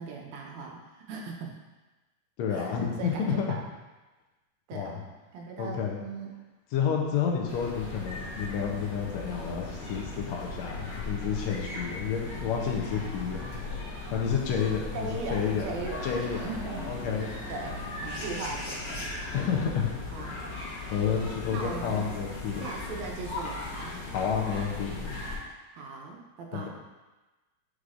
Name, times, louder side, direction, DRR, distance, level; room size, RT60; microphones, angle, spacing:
voice 1, 0.0-1.6 2.5-3.6 4.7-5.0 5.3-6.3 14.9-16.9 17.5-19.1 20.1-20.3 21.1-22.1 22.6-24.0 25.7-26.7, right 4 dB, 85° right, 0 dB, 2.2 m, -39 dB
voice 2, 2.4-3.6 4.7-5.0 5.6-6.0 6.7-13.6 14.1-15.7 16.0-16.5 16.9-17.5 19.3-19.9 20.4-20.5 20.9-22.7 24.1-25.2 26.5-26.7, left 7 dB, 75° left, 0 dB, 2.0 m, -30 dB
sound 1, 7.5-25.4, left 2 dB, 55° left, 1.9 m, -38 dB
8.2 x 4.8 x 2.5 m, 1.2 s
omnidirectional pair, 3.3 m